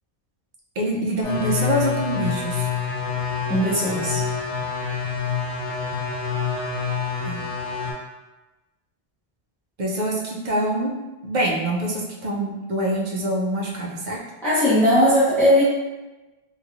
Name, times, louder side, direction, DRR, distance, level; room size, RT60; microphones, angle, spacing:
voice 1, 0.8-2.7 7.2-7.4 9.8-10.9 11.2-14.2, right 1 dB, 50° right, -2 dB, 0.7 m, -25 dB
sound 1, 1.2-7.9, left 6 dB, 25° right, 1.1 m, -27 dB
voice 2, 3.5-4.2 14.4-15.6, equal, ahead, -11 dB, 0.9 m, -18 dB
3.1 x 3.0 x 2.4 m, 1.1 s
omnidirectional pair, 1.1 m